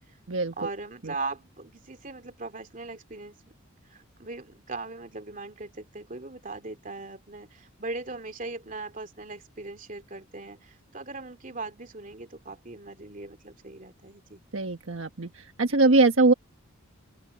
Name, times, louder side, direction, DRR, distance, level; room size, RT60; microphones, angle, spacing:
voice 1, 0.6-3.4 3.8-14.4, right 3 dB, 40° right, 2.7 m, -39 dB
voice 2, 14.5-15.3 15.6-16.3, right 3 dB, 75° right, 1.3 m, -21 dB
open air
head